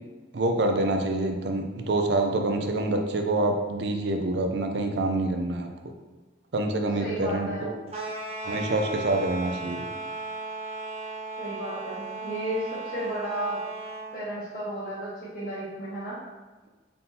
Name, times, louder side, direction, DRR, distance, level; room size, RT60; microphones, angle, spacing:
voice 1, 0.3-5.7 6.5-7.7 8.4-9.8, right 2 dB, 70° right, 4 dB, 0.5 m, -26 dB
voice 2, 7.0-7.9 11.4-13.6 14.1-16.2, right 1 dB, 55° left, -9 dB, 1.1 m, -33 dB
sound 1, 7.9-14.1, right 3 dB, 35° right, 0.8 m, -36 dB
4.1 x 3.7 x 2.8 m, 1.3 s
head